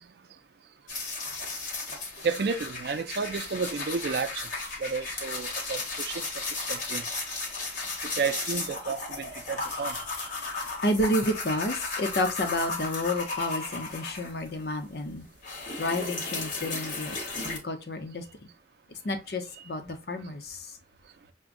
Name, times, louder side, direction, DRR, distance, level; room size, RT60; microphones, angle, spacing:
sound 1, 0.9-14.6 15.0-17.6, left 3 dB, 45° left, 1.1 m, -35 dB
voice 1, 2.2-4.5 4.8-7.2 7.8-10.3, right 5 dB, 65° right, 0.4 m, -32 dB
voice 2, 10.8-15.3 15.8-17.2 17.4-18.2 19.0-20.7, left 1 dB, 65° left, 0.7 m, -30 dB
5.9 x 2.2 x 2.5 m
head